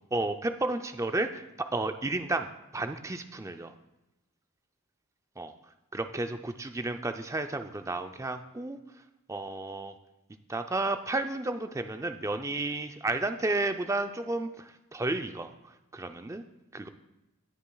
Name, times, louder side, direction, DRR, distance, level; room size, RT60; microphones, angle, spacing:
voice 1, 0.1-1.4 1.7-3.7 5.4-5.5 5.9-8.8 9.3-9.9 10.5-16.4 16.7-16.9, right 2 dB, 15° right, 8 dB, 0.4 m, -32 dB
18.5 x 7.0 x 2.3 m, 0.96 s
head